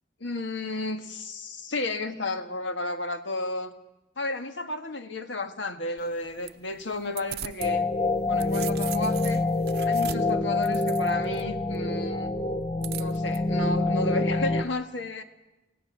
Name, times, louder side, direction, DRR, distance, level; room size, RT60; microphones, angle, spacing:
voice 1, 0.2-3.7 4.2-7.9 8.3-9.4 9.9-12.3 12.9-15.2, left 2 dB, 75° left, 8 dB, 1.7 m, -32 dB
sound 1, 6.0-7.7 8.1-11.4 12.8-13.4, right 12 dB, 55° right, 0.7 m, -40 dB
sound 2, 7.6-14.6, left 2 dB, 30° left, 0.7 m, -26 dB
28.0 x 16.5 x 7.4 m, 1.0 s
head